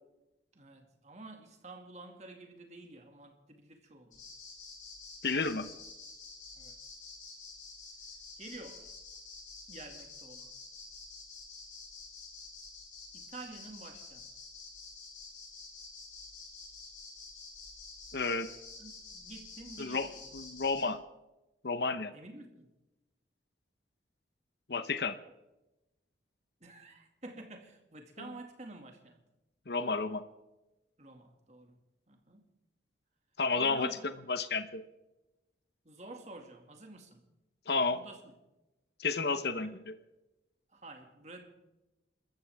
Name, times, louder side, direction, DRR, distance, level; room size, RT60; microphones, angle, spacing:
voice 1, 0.5-4.2 6.5-7.0 8.4-8.9 9.7-10.6 13.1-14.3 18.8-20.2 22.1-22.7 26.6-29.2 31.0-31.8 32.1-32.5 33.5-34.2 35.8-37.3 37.9-38.3 39.4-39.5 40.7-41.5, right 2 dB, 40° right, 4 dB, 2.1 m, -50 dB
sound 1, 4.1-20.8, left 4 dB, 45° left, 6.6 m, -49 dB
voice 2, 5.2-5.7 18.1-18.5 19.8-21.0 21.6-22.1 24.7-25.2 29.7-30.2 33.4-33.9 34.3-34.8 37.7-38.0 39.0-39.9, left 4 dB, 60° left, 11 dB, 0.9 m, -31 dB
28.0 x 14.0 x 3.5 m, 0.99 s
head